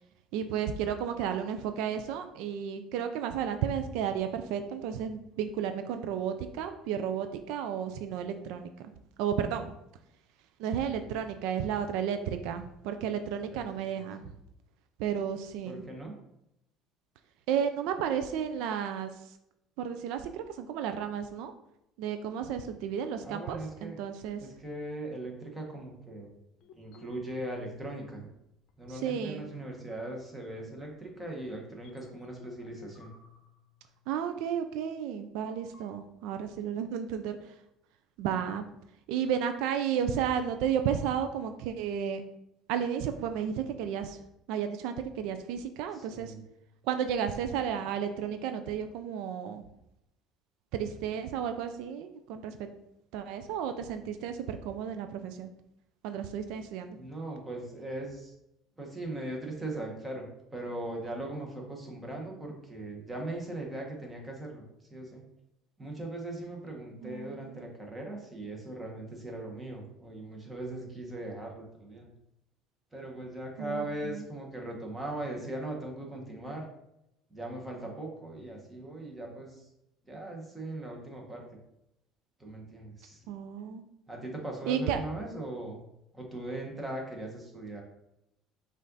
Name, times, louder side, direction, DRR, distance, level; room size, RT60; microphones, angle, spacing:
voice 1, 0.3-8.9 9.2-9.7 10.6-14.2 15.0-15.8 17.5-19.3 19.8-21.5 22.0-24.4 28.9-29.5 34.1-37.5 38.2-38.7 39.1-42.2 42.7-44.2 44.5-46.3 46.8-49.6 50.7-52.7 53.1-55.5 56.0-57.0 67.0-67.7 73.6-74.2 83.3-83.8 84.7-85.0, right 8 dB, 80° right, 8 dB, 0.3 m, -33 dB
voice 2, 15.6-16.1 23.2-24.0 24.4-26.3 26.7-28.3 28.8-33.1 45.9-46.4 56.9-58.3 58.8-60.3 60.5-64.6 64.9-65.2 65.8-72.1 72.9-76.6 77.3-79.7 80.1-81.4 82.4-83.2 84.1-85.8 86.1-87.8, right 1 dB, 10° right, 0 dB, 1.1 m, -39 dB
sound 1, 26.6-28.4 28.7-29.6 30.1-30.2 30.8-31.0 31.7-34.3 35.4-35.9, left 8 dB, 60° left, 0.6 m, -54 dB
5.3 x 2.5 x 3.9 m, 0.82 s
cardioid pair, 135°, 0 cm